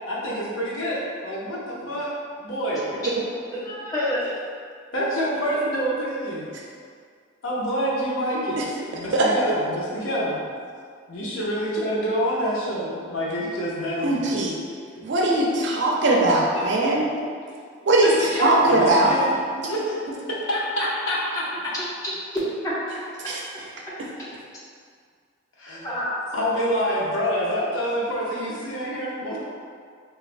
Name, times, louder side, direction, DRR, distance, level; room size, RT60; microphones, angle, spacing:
voice 1, 0.1-1.6 1.9-2.1 2.4-2.8 4.9-6.5 7.4-8.6 8.9-10.4 11.1-14.3 15.0-15.1 16.5-16.6 18.0-19.3 19.6-20.0 20.3-21.7 25.6-25.9 26.3-29.4, equal, 75° left, -5 dB, 0.6 m, -27 dB
voice 2, 3.5-4.4 22.0-22.7 23.2-23.3 25.8-26.2, equal, 15° left, -8 dB, 0.6 m, -28 dB
voice 3, 14.0-14.5 15.0-17.1 17.9-19.1 23.2-23.4, right 2 dB, 60° right, -2 dB, 0.4 m, -20 dB
3.1 x 2.3 x 2.5 m, 2.1 s
head